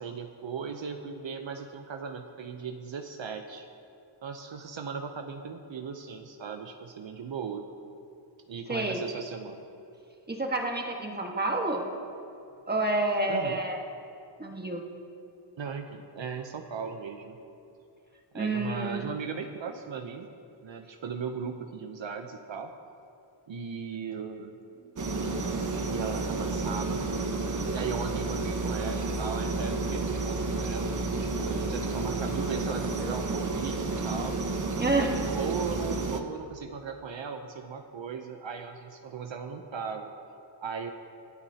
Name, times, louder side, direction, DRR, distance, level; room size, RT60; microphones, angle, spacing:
voice 1, 0.0-3.7 4.2-7.7 8.5-9.6 13.3-13.6 15.6-17.4 18.3-20.3 20.6-22.7 23.5-24.5 25.8-27.1 27.7-34.3 35.0-40.1 40.6-40.9, right 6 dB, 65° right, 5 dB, 0.9 m, -37 dB
voice 2, 8.7-9.0 10.3-11.8 12.7-13.8 14.4-14.8 18.3-19.1 34.8-35.1, right 2 dB, 20° right, 1 dB, 1.6 m, -28 dB
sound 1, 25.0-36.2, right 3 dB, 40° right, 1.1 m, -31 dB
26.0 x 8.8 x 2.9 m, 2.7 s
wide cardioid pair, 80°, 48 cm